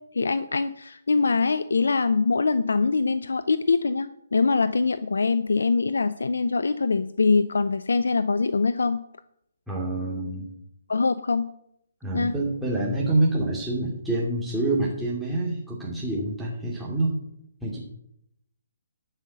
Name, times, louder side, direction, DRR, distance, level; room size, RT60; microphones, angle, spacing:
voice 1, 0.1-9.0 10.9-11.5 12.1-12.3, left 4 dB, 70° left, 13 dB, 0.5 m, -23 dB
voice 2, 9.7-10.5 12.0-17.2 17.6-17.8, right 2 dB, 5° right, -6 dB, 2.6 m, -26 dB
11.5 x 5.6 x 8.0 m, 0.75 s
figure-of-eight pair, 135°, 0 cm